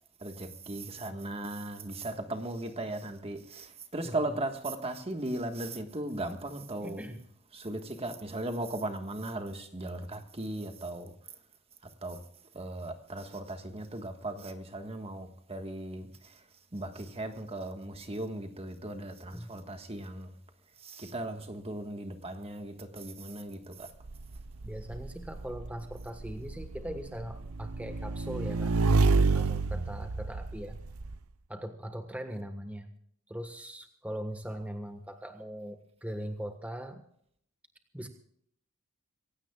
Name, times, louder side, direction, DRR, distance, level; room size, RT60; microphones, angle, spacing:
voice 1, 0.2-7.0 7.5-11.1 12.0-12.2 12.5-16.4 16.7-20.3 20.8-23.9, right 1 dB, 25° right, 1.5 m, -37 dB
voice 2, 6.8-7.2 19.3-19.5 24.6-28.7 29.3-30.8 31.5-32.9 33.3-37.0 37.9-38.1, equal, 5° right, 1.3 m, -40 dB
Motorcycle / Engine, 24.0-31.1, right 3 dB, 70° right, 0.7 m, -29 dB
26.5 x 16.5 x 2.4 m
head